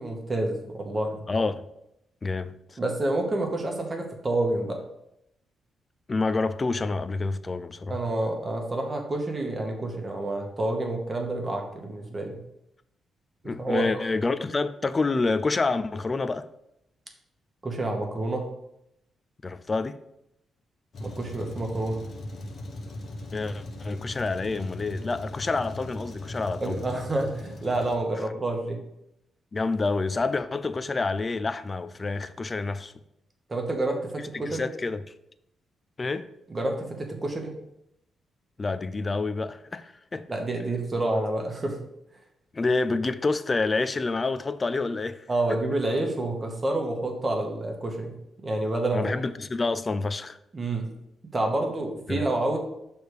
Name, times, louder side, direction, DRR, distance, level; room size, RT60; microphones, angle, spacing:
voice 1, 0.0-1.2 2.8-4.8 7.9-12.4 13.4-14.0 17.6-18.4 21.0-22.0 26.6-28.8 33.5-34.7 36.5-37.5 40.3-41.8 45.3-48.1 48.4-49.2 50.5-50.9 51.3-52.6, right 2 dB, 25° right, 1.1 m, -28 dB
voice 2, 1.3-1.6 2.2-2.8 6.1-8.0 13.4-16.5 19.4-20.0 23.3-26.8 29.5-32.9 34.3-35.0 36.0-36.3 38.6-40.3 42.5-45.6 48.9-50.4 52.1-52.2, left 3 dB, 25° left, 0.3 m, -28 dB
Truck, 20.9-28.0, left 1 dB, 50° left, 0.9 m, -39 dB
6.3 x 3.3 x 4.8 m
cardioid pair, 115°, 0 cm